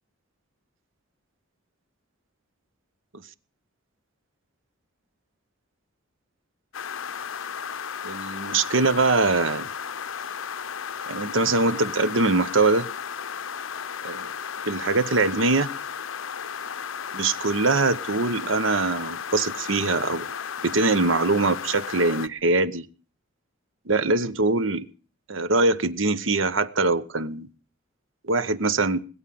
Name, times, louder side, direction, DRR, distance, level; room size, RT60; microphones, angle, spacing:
sound 1, 6.7-22.3, left 7 dB, 80° left, 0.7 m, -34 dB
voice 1, 8.0-9.7 11.1-12.9 14.0-14.3 14.6-15.7 17.1-20.3 20.6-22.9 23.9-24.9 25.3-27.5 28.2-29.0, right 3 dB, 70° right, 1.0 m, -23 dB
20.5 x 8.3 x 7.7 m
head